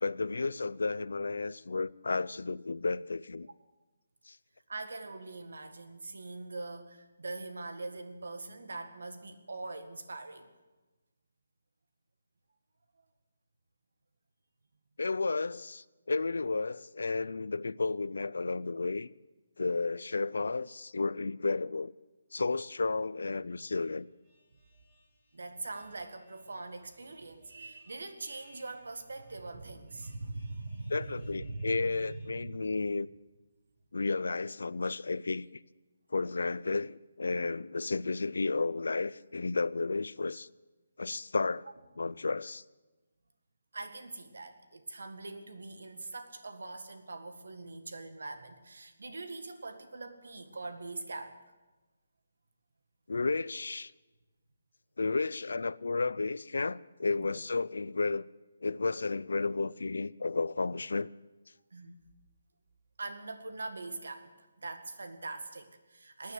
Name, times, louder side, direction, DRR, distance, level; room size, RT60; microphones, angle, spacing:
voice 1, 0.0-3.5 4.3-4.4 15.0-19.1 19.6-21.9 22.3-24.1 30.9-33.1 33.9-35.5 36.1-40.5 41.0-41.7 42.0-42.6 53.1-53.9 55.0-58.3 58.6-61.1, left 3 dB, 90° left, 0.5 m, -32 dB
voice 2, 4.7-10.5 25.3-32.7 43.7-51.4 57.2-57.3 61.7-62.0 63.0-66.3, right 2 dB, 75° right, 1.8 m, -42 dB
sound 1, 23.4-32.3, left 1 dB, 20° right, 2.8 m, -68 dB
18.0 x 9.6 x 7.8 m
hypercardioid pair, 180°, 0 cm